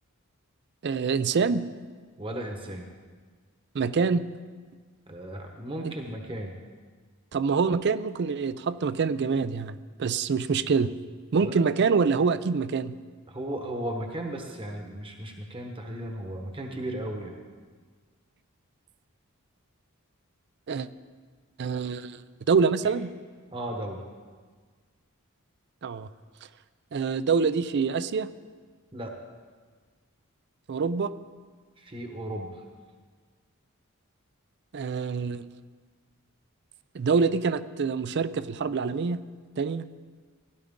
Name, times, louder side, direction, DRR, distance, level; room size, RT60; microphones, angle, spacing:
voice 1, 0.8-1.7 3.7-4.2 5.8-5.9 7.3-10.9 11.3-12.9 20.7-20.9 21.6-22.2 22.5-23.1 25.8-26.1 26.9-28.3 30.7-31.1 34.7-35.4 36.9-39.2 39.6-39.8, right 5 dB, 50° right, 15 dB, 0.4 m, -25 dB
voice 2, 2.2-2.9 5.1-6.5 11.4-11.6 13.3-17.4 22.8-22.9 23.5-24.0 28.9-29.1 31.8-32.6, right 1 dB, 25° right, 2 dB, 1.1 m, -35 dB
16.5 x 11.5 x 3.6 m, 1.5 s
head